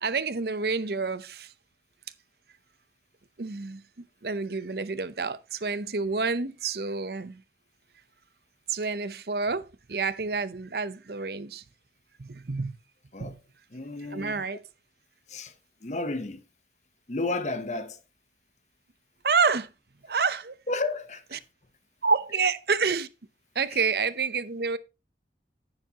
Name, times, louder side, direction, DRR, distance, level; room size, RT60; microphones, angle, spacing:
voice 1, 0.0-1.5 3.4-3.8 4.2-7.4 8.7-11.6 12.2-12.8 13.2-13.3 14.1-14.6 19.2-19.7 20.0-20.6 21.3-21.4 22.0-23.1 23.5-24.8, right 4 dB, 60° right, 0.7 m, -28 dB
voice 2, 13.7-14.4 15.3-15.5 15.8-16.4 17.1-18.0 20.7-21.4, left 2 dB, 40° left, 0.9 m, -32 dB
10.0 x 9.8 x 2.9 m
head